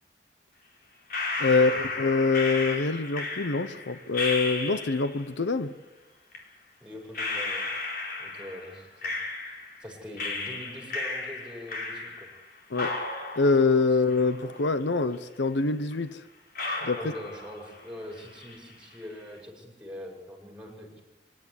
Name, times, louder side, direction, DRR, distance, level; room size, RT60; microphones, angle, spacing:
sound 1, 1.1-5.2 6.3-6.4 7.1-9.8 10.2-12.4 12.7-14.8 15.1-15.2 15.9-16.0 16.5-17.9 18.1-18.7, left 3 dB, 55° left, 4.1 m, -34 dB
voice 1, 1.4-1.7 2.0-5.7 12.7-13.0 13.4-16.2 16.8-17.1, left 4 dB, 90° left, 0.9 m, -25 dB
voice 2, 6.8-7.7 8.2-9.2 9.8-12.3 16.9-21.0, left 1 dB, 5° right, 6.0 m, -43 dB
25.0 x 11.0 x 9.8 m
head